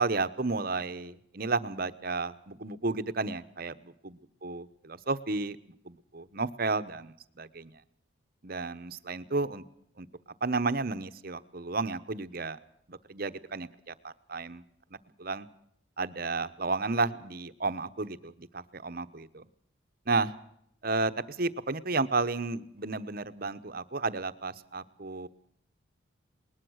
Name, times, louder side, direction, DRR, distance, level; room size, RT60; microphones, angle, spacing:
voice 1, 0.0-5.6 5.8-7.7 8.4-9.6 10.0-10.1 10.4-12.6 12.9-14.6 15.2-15.5 16.0-19.5 20.1-20.3 20.8-25.3, right 3 dB, 45° right, 13 dB, 1.0 m, -32 dB
20.5 x 20.0 x 6.4 m, 0.70 s
head